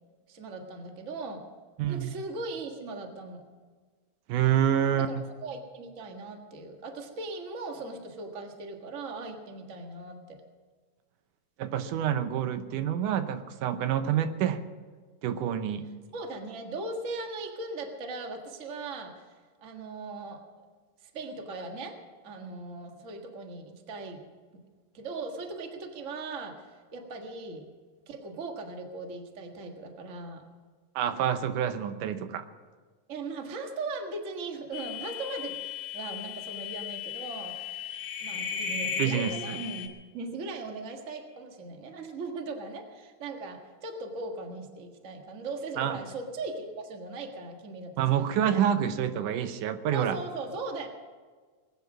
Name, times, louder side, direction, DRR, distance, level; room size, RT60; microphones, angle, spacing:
voice 1, 0.3-1.4 1.9-3.4 5.0-10.4 16.1-19.3 19.6-20.7 21.0-24.2 24.9-27.6 28.1-30.4 33.1-35.6 35.9-48.6 49.9-50.9, right 3 dB, 35° right, 3 dB, 1.3 m, -39 dB
voice 2, 1.8-2.1 4.3-5.2 11.6-14.6 15.2-15.9 31.0-32.4 39.0-39.6 45.8-46.0 48.0-50.2, right 9 dB, 85° right, 10 dB, 2.4 m, -27 dB
sound 1, 34.7-39.9, left 7 dB, 70° left, 2.6 m, -36 dB
20.0 x 9.7 x 6.1 m, 1.5 s
omnidirectional pair, 3.6 m